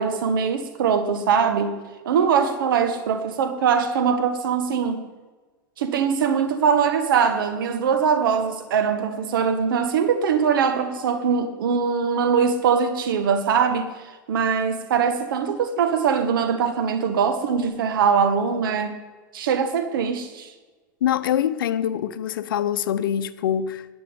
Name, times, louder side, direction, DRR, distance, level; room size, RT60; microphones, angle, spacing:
voice 1, 0.0-5.1 5.8-13.9 14.3-19.0 19.3-20.5, right 6 dB, 80° right, 1.6 m, -22 dB
voice 2, 21.0-23.9, left 10 dB, 80° left, 0.7 m, -24 dB
11.5 x 6.3 x 8.8 m
hypercardioid pair, 110°, 11 cm